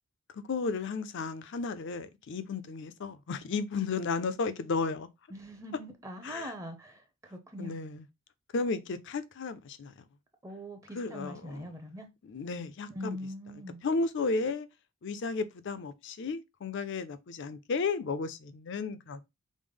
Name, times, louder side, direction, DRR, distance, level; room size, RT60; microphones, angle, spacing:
voice 1, 0.3-5.1 6.2-6.5 7.6-8.1 8.5-9.9 10.9-11.7 12.3-13.2 13.8-14.7 15.0-19.2, left 4 dB, 55° left, 0.4 m, -33 dB
voice 2, 5.3-7.8 10.4-12.1 12.9-13.8, equal, 15° right, 0.6 m, -42 dB
5.1 x 2.0 x 3.4 m
head